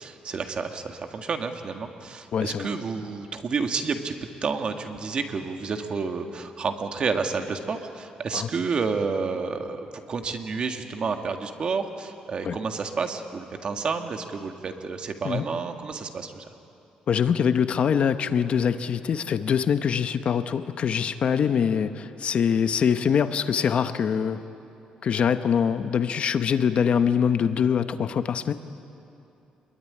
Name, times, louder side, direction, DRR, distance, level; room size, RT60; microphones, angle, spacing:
voice 1, 0.0-4.2 4.4-16.4, right 5 dB, 40° right, 5 dB, 1.9 m, -30 dB
voice 2, 2.3-2.7 8.3-8.5 12.4-12.6 15.2-15.4 17.1-24.4 25.0-28.5, left 7 dB, 50° left, 10 dB, 0.9 m, -24 dB
26.5 x 22.5 x 9.9 m, 2.8 s
cardioid pair, 145°, 3 cm